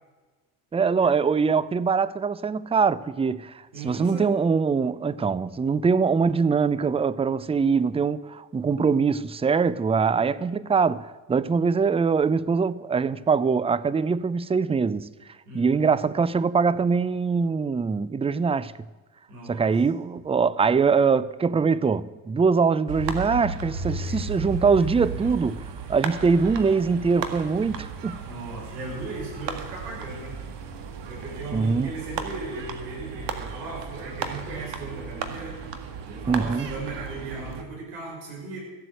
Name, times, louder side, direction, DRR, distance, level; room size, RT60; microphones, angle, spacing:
voice 1, 0.7-15.1 15.5-18.7 19.5-28.2 31.5-31.9 36.3-36.7, right 5 dB, 10° right, 0.5 m, -23 dB
voice 2, 3.7-4.4 15.5-15.9 19.3-19.7 24.0-24.2 28.3-30.4 31.1-35.6 36.0-38.6, right 2 dB, 85° right, 5.7 m, -37 dB
sound 1, 22.9-37.6, right 5 dB, 55° right, 1.9 m, -35 dB
15.0 x 8.0 x 7.7 m
hypercardioid pair, 65°, 50 cm